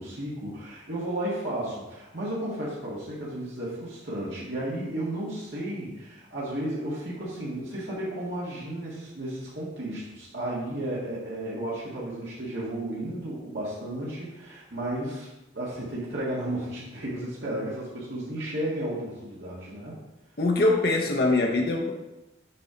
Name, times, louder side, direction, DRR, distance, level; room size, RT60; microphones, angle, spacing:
voice 1, 0.0-20.0, right 1 dB, 70° right, -7 dB, 1.8 m, -33 dB
voice 2, 20.4-21.9, left 2 dB, 55° left, 1 dB, 0.8 m, -23 dB
7.5 x 5.3 x 3.9 m, 0.98 s
head